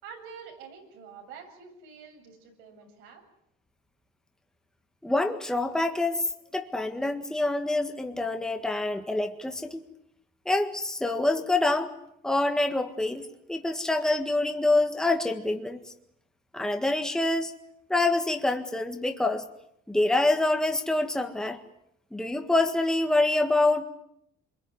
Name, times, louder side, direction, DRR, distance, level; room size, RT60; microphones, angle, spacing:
voice 1, 0.0-3.2, right 6 dB, 85° right, 3 dB, 7.5 m, -47 dB
voice 2, 5.0-6.2 6.5-9.8 10.4-11.9 12.2-13.2 13.5-15.8 16.5-17.5 17.9-19.4 19.9-21.6 22.1-23.8, left 2 dB, 5° left, 5 dB, 1.7 m, -26 dB
27.0 x 22.5 x 9.6 m, 0.76 s
cardioid pair, 150°, 20 cm